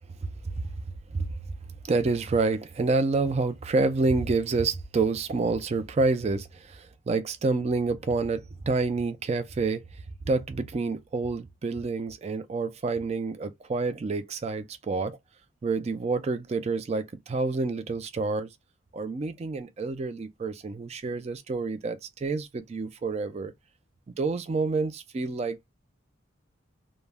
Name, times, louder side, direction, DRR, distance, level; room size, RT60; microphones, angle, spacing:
voice 1, 1.9-9.8 10.3-15.2 15.6-18.5 18.9-23.5 24.2-25.7, right 3 dB, 30° right, 0.3 m, -28 dB
2.2 x 2.0 x 3.3 m
head